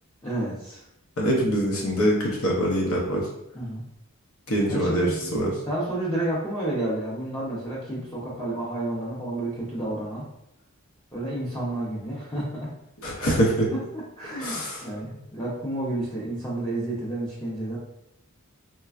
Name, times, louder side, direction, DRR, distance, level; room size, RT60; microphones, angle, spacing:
voice 1, 0.2-0.8 3.5-3.8 4.7-5.3 5.7-10.2 11.1-12.7 13.3-13.4 13.9-17.8, right 1 dB, 15° left, -9 dB, 0.6 m, -30 dB
voice 2, 1.2-3.3 4.5-5.5 13.0-13.7 14.4-14.8, equal, 70° left, -2 dB, 0.8 m, -24 dB
4.1 x 2.2 x 2.4 m, 0.82 s
head